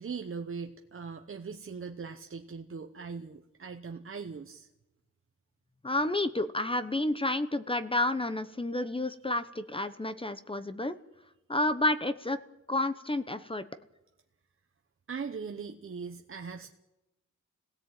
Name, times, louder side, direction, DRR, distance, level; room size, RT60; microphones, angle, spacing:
voice 1, 0.0-4.7 15.1-16.7, right 5 dB, 40° right, 4 dB, 1.1 m, -40 dB
voice 2, 5.8-10.9 11.5-12.4 12.7-13.7, left 2 dB, 15° left, 11 dB, 0.9 m, -30 dB
26.5 x 17.5 x 9.0 m, 0.99 s
wide cardioid pair, 150°, 31 cm